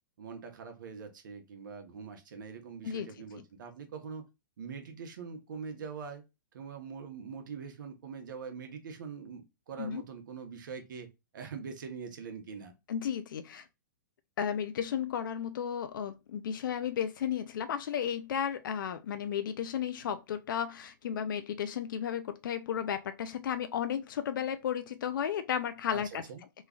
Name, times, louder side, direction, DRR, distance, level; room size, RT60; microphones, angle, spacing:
voice 1, 0.2-4.2 4.6-6.2 6.5-11.1 11.3-12.7 25.9-26.0 26.3-26.4, right 6 dB, 70° right, 0.9 m, -43 dB
voice 2, 12.9-13.7 14.4-26.2, left 8 dB, 75° left, 0.4 m, -34 dB
3.1 x 2.3 x 3.6 m
hypercardioid pair, 155°, 11 cm